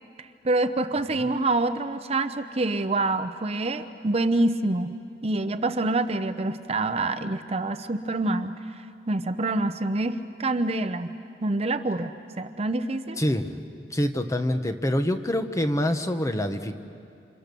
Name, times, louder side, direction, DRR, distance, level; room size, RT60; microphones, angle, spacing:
voice 1, 0.2-4.9 5.2-8.5 9.1-11.1 11.4-13.2, right 2 dB, 35° right, 9 dB, 0.7 m, -26 dB
voice 2, 13.2-13.6 13.9-16.7, left 1 dB, 20° left, 8 dB, 1.1 m, -25 dB
28.0 x 27.5 x 6.9 m, 2.5 s
head